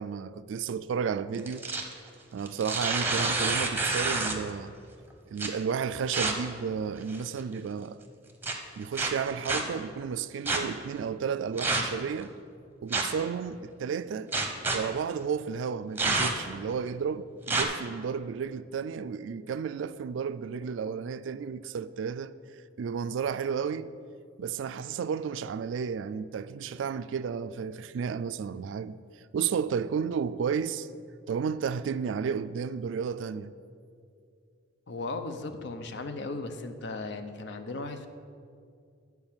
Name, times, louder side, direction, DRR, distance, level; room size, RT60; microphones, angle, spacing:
voice 1, 0.0-1.6 2.3-4.7 5.3-8.0 8.8-12.3 12.8-14.3 14.7-22.3 22.8-23.9 24.4-29.0 29.3-30.9 31.3-33.5, right 6 dB, 70° right, 0.3 m, -32 dB
sound 1, 1.3-1.9 2.5-4.5 5.4-5.5 6.1-6.3 7.0-7.4 8.4-8.5 8.9-9.6 10.5-10.6 11.6-12.0 12.9-13.2 14.3-14.8 16.0-16.5 17.5-17.6, right 3 dB, 10° right, 0.8 m, -28 dB
voice 2, 34.9-38.1, left 3 dB, 65° left, 0.7 m, -36 dB
9.6 x 4.6 x 7.3 m
head